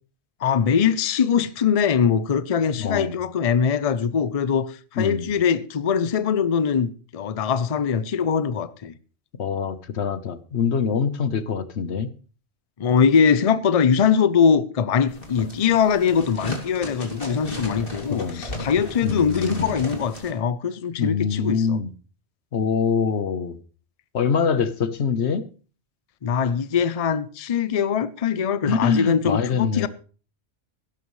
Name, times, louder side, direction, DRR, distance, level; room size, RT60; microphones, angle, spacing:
voice 1, 0.4-8.9 12.8-21.8 26.2-29.9, left 7 dB, 40° left, 0.6 m, -22 dB
voice 2, 2.8-3.1 5.0-5.3 9.4-12.1 18.1-18.4 19.0-19.7 21.0-21.9 22.5-23.6 24.1-25.4 28.6-29.9, left 6 dB, 90° left, 1.3 m, -24 dB
sound 1, 15.1-20.3, left 1 dB, 55° left, 2.9 m, -34 dB
16.5 x 12.0 x 3.2 m
omnidirectional pair, 1.1 m